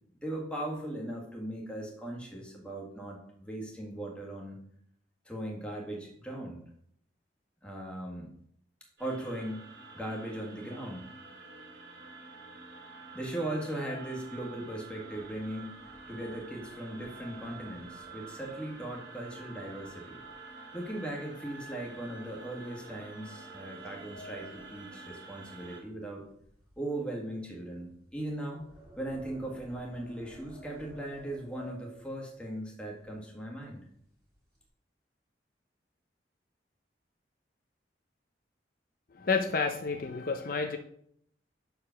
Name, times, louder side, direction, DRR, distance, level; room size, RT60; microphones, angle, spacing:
voice 1, 0.2-4.6 5.2-6.6 7.6-8.3 9.0-9.6 9.9-11.1 13.1-15.8 16.1-20.2 20.7-26.2 26.8-28.7 29.0-33.8, right 1 dB, 5° left, -1 dB, 1.6 m, -38 dB
sound 1, 9.0-25.8, right 3 dB, 70° right, 2.6 m, -48 dB
sound 2, 15.1-20.5 20.8-21.1 21.6-21.8 22.6-25.9 26.2-32.4 33.0-33.1 33.4-33.7 34.0-34.7, equal, 20° right, 2.7 m, -55 dB
voice 2, 39.1-40.8, left 4 dB, 50° left, 5 dB, 0.6 m, -30 dB
6.6 x 4.8 x 5.7 m, 0.69 s
head